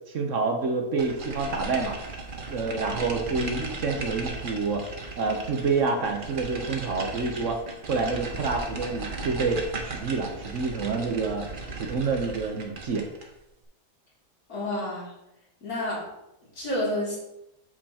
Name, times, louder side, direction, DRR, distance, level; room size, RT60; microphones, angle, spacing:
voice 1, 0.1-2.0 2.5-4.8 5.2-7.6 7.9-11.5 11.7-13.1, right 4 dB, 60° right, 3 dB, 1.2 m, -28 dB
sound 1, 1.0-13.3, right 3 dB, 40° right, 1.0 m, -37 dB
voice 2, 14.5-15.1 15.6-16.0 16.6-17.2, left 1 dB, 65° left, -7 dB, 3.4 m, -29 dB
8.5 x 6.7 x 2.9 m, 0.88 s
omnidirectional pair, 1.6 m